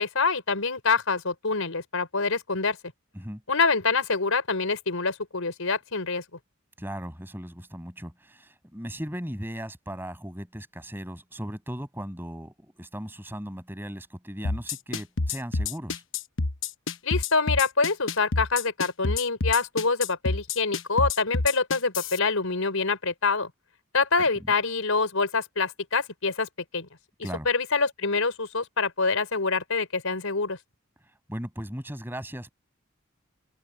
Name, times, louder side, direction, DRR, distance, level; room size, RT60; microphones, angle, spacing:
voice 1, 0.0-2.8 3.5-6.2 17.0-23.5 23.9-26.9 27.5-30.6, left 4 dB, 85° left, 4.3 m, -26 dB
voice 2, 6.8-16.0 27.2-27.5 31.3-32.5, equal, 10° right, 6.6 m, -37 dB
sound 1, 14.4-22.2, left 3 dB, 65° left, 1.0 m, -28 dB
open air
head